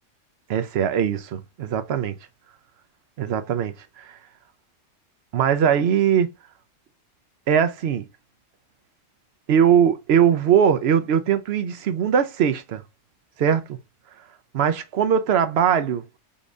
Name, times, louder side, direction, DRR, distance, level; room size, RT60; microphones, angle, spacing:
voice 1, 0.5-2.2 3.2-4.2 5.3-6.3 7.5-8.1 9.5-12.8 13.4-13.8 14.5-16.2, right 8 dB, 60° right, 0.8 m, -21 dB
4.0 x 3.7 x 2.4 m
omnidirectional pair, 1.3 m